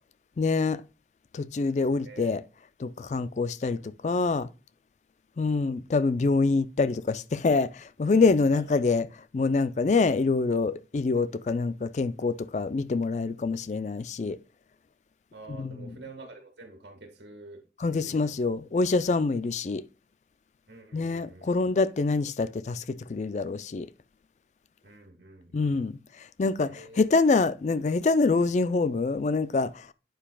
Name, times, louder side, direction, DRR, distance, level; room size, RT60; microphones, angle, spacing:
voice 1, 0.4-0.8 1.3-2.4 2.8-4.5 5.4-9.1 9.3-14.4 15.5-16.0 17.8-19.8 20.9-23.9 25.5-26.0 26.4-29.9, left 3 dB, 40° left, 0.3 m, -26 dB
voice 2, 15.3-17.6 17.9-18.3 20.7-21.6 24.8-25.9 26.7-27.0, right 3 dB, 80° right, 1.7 m, -48 dB
9.0 x 7.2 x 2.2 m
head